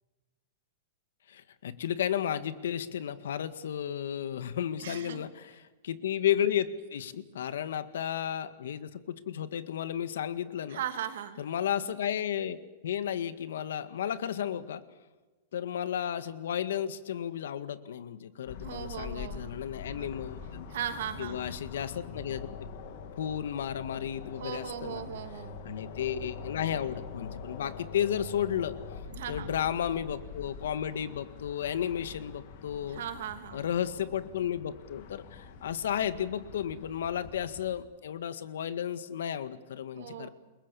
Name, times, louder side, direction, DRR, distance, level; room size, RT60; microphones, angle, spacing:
voice 1, 1.3-10.8 11.4-12.6 12.8-14.8 15.5-20.7 21.2-22.5 23.2-25.0 25.6-28.8 29.3-33.0 33.5-40.3, left 9 dB, 85° left, 12 dB, 1.8 m, -33 dB
voice 2, 4.8-5.3 10.7-11.4 18.6-19.6 19.9-20.1 20.7-21.5 24.4-25.6 29.1-29.5 32.9-33.7 40.0-40.3, right 9 dB, 60° right, 7 dB, 2.9 m, -38 dB
sound 1, 18.5-37.7, left 5 dB, 45° left, 2.7 m, -44 dB
29.5 x 21.5 x 7.1 m, 1.2 s
supercardioid pair, 180°, 0 cm